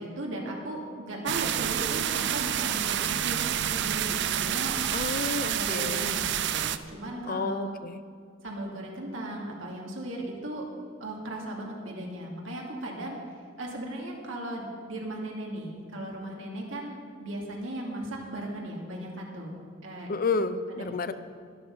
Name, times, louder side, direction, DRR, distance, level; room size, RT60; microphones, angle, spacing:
voice 1, 0.0-4.7 5.5-7.7 8.4-10.7 11.0-13.2 13.6-19.5 19.8-20.1 20.8-20.9, right 1 dB, 85° right, -1 dB, 2.5 m, -37 dB
sound 1, 1.3-6.8, right 10 dB, 65° right, 0.5 m, -28 dB
voice 2, 4.9-6.1 7.3-8.0 20.1-21.1, left 4 dB, 45° left, 12 dB, 0.5 m, -30 dB
12.0 x 11.5 x 5.4 m, 2.1 s
head